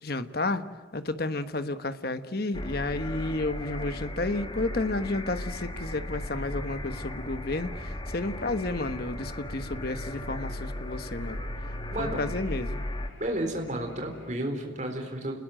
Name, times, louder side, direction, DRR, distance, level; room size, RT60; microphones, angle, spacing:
voice 1, 0.0-0.6 0.9-11.4 12.0-12.8, left 2 dB, 55° left, 10 dB, 1.3 m, -31 dB
sound 1, 2.5-13.1, left 1 dB, 25° left, 1.9 m, -36 dB
sound 2, 7.1-14.3, equal, 85° left, 2.8 m, -50 dB
voice 2, 13.2-15.4, right 1 dB, 40° right, 3 dB, 3.9 m, -32 dB
29.5 x 20.5 x 7.7 m, 1.5 s
head